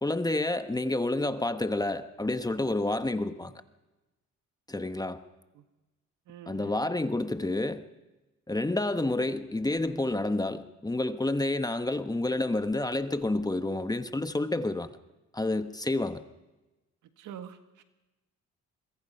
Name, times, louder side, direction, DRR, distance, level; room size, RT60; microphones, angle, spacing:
voice 1, 0.0-3.5 4.7-5.2 6.5-7.8 8.5-14.9 15.3-16.2, left 2 dB, 10° left, 1.2 m, -29 dB
voice 2, 6.3-6.7 17.2-17.8, right 9 dB, 85° right, 1.8 m, -45 dB
24.5 x 23.0 x 5.6 m
cardioid pair, 90°, 30 cm